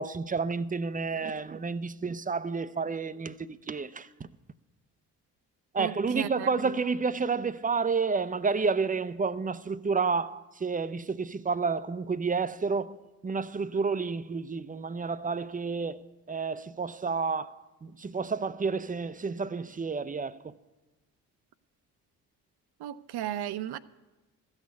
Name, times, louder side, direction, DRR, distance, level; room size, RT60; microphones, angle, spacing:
voice 1, 0.0-4.1 5.7-13.0 13.2-20.5, right 4 dB, 20° right, 0.6 m, -30 dB
voice 2, 5.8-6.7 22.8-23.8, right 11 dB, 55° right, 0.7 m, -35 dB
14.0 x 6.5 x 9.4 m
hypercardioid pair, 45°, 47 cm